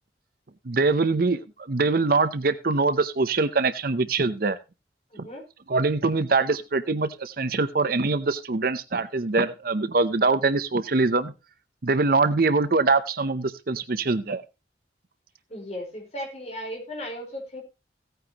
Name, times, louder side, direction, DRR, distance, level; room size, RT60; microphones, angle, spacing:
voice 1, 0.7-1.4 1.7-4.6 5.2-5.3 5.7-11.3 11.8-14.4, right 3 dB, 55° right, 13 dB, 0.7 m, -23 dB
voice 2, 5.1-5.4 15.5-17.6, equal, 40° left, 1 dB, 4.4 m, -36 dB
16.0 x 9.1 x 2.9 m, 0.26 s
head